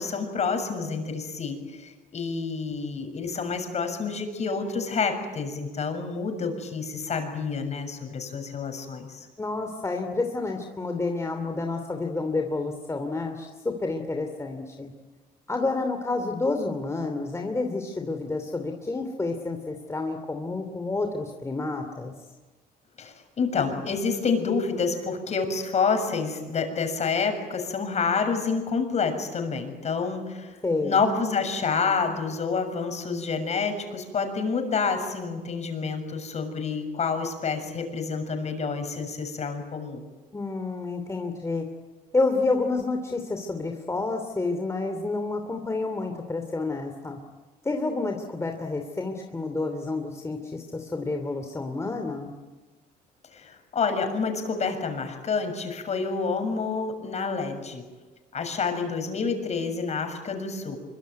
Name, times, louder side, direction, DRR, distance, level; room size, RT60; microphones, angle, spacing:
voice 1, 0.0-9.3 23.0-40.0 53.3-57.8 58.3-60.8, left 5 dB, 40° left, 6 dB, 6.8 m, -28 dB
voice 2, 9.4-14.9 15.5-22.1 30.6-31.0 40.3-41.6 42.1-47.2 47.6-52.3, left 3 dB, 15° left, 4 dB, 2.8 m, -29 dB
25.0 x 23.5 x 9.4 m, 1.3 s
cardioid pair, 110°, 17 cm